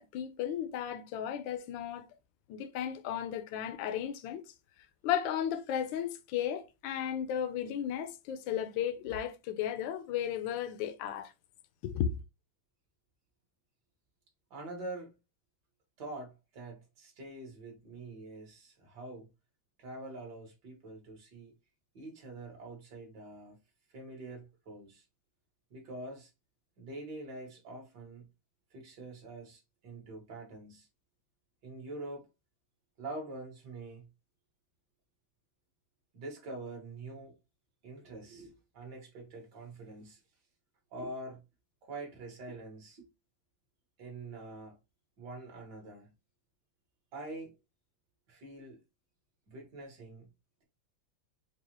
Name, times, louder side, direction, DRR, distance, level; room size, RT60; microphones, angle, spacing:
voice 1, 0.0-2.1 2.5-4.4 5.0-11.3 11.8-12.2, left 9 dB, 75° left, 1.3 m, -34 dB
voice 2, 14.5-15.2 16.0-19.3 19.8-21.5 21.9-23.6 23.9-25.1 25.7-26.3 26.8-28.3 28.7-30.9 31.6-32.3 33.0-34.1 36.1-37.3 37.8-40.2 40.9-41.4 41.8-43.1 44.0-44.8 45.2-46.1 47.1-47.5 48.3-48.8 49.5-50.3, right 2 dB, 55° right, 1.9 m, -45 dB
4.7 x 2.4 x 2.9 m
omnidirectional pair, 2.3 m